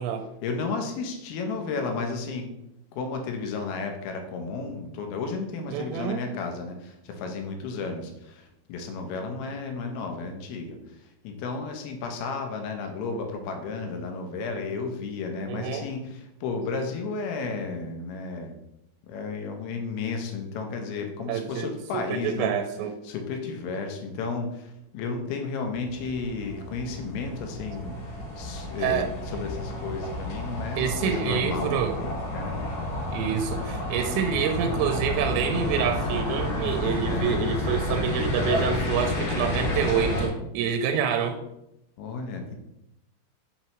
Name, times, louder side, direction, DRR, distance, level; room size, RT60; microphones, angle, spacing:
voice 1, 0.4-2.5 2.9-18.5 19.1-22.5 23.0-27.9 28.4-32.6 37.1-37.4 42.0-42.5, left 4 dB, 75° left, 4 dB, 2.4 m, -33 dB
voice 2, 5.7-6.2 15.5-15.8 21.3-22.9 28.8-29.1 30.8-31.9 33.1-41.4, right 7 dB, 85° right, 5 dB, 2.8 m, -27 dB
sound 1, 25.7-40.3, left 1 dB, 45° left, 2.4 m, -30 dB
7.4 x 5.6 x 3.0 m, 0.85 s
omnidirectional pair, 5.2 m